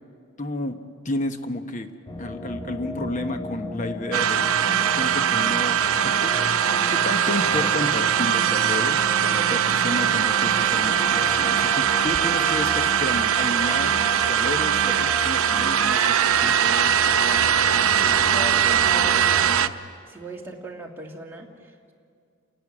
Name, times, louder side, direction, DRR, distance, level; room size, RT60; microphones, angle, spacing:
voice 1, 0.4-0.8 1.0-1.9 2.2-4.5 4.9-6.6 6.9-16.9, left 1 dB, 35° left, 7 dB, 1.2 m, -31 dB
sound 1, 2.1-19.7, left 1 dB, 20° left, 0.7 m, -36 dB
sound 2, 4.1-19.7, right 8 dB, 90° right, 0.7 m, -21 dB
voice 2, 17.8-19.5 20.1-21.9, right 1 dB, 10° right, -1 dB, 2.1 m, -38 dB
29.0 x 11.0 x 9.9 m, 2.3 s
head